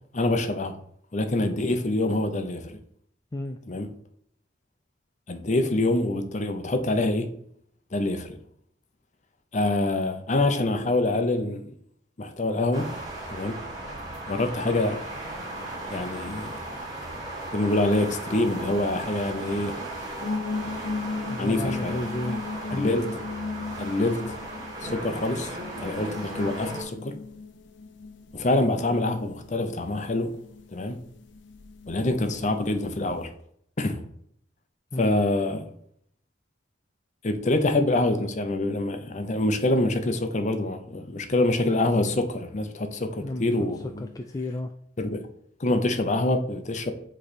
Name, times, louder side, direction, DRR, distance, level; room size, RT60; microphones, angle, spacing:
voice 1, 0.1-0.8 1.1-2.8 3.7-3.9 5.3-7.3 7.9-8.4 9.5-11.6 12.2-12.9 13.3-13.6 14.3-15.0 15.9-16.6 17.5-19.8 21.4-22.0 22.7-23.2 23.8-24.2 24.8-27.1 28.3-30.3 30.7-31.0 31.9-33.3 33.8-34.0 35.0-35.7 37.2-44.1 45.0-45.2 45.6-46.9, left 2 dB, 40° left, 0.7 m, -25 dB
sound 1, 12.7-26.8, right 1 dB, 20° right, 1.7 m, -36 dB
sound 2, 20.2-33.3, left 4 dB, 80° left, 0.6 m, -37 dB
voice 2, 21.3-22.5 22.7-22.9 34.9-35.1 43.2-43.5 44.0-44.7, left 1 dB, 20° left, 0.3 m, -32 dB
7.8 x 3.3 x 4.2 m
head